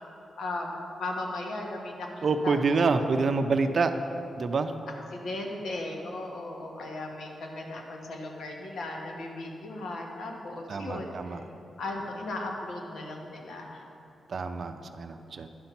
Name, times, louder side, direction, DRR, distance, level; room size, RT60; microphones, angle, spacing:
voice 1, 0.4-3.3 5.1-11.4 11.8-13.8, left 2 dB, 80° left, 1 dB, 1.3 m, -37 dB
voice 2, 2.2-3.9 4.4-4.7 10.7-11.4 14.3-15.5, right 4 dB, 50° right, 8 dB, 0.5 m, -27 dB
11.0 x 5.3 x 5.9 m, 2.9 s
wide cardioid pair, 115°, 0 cm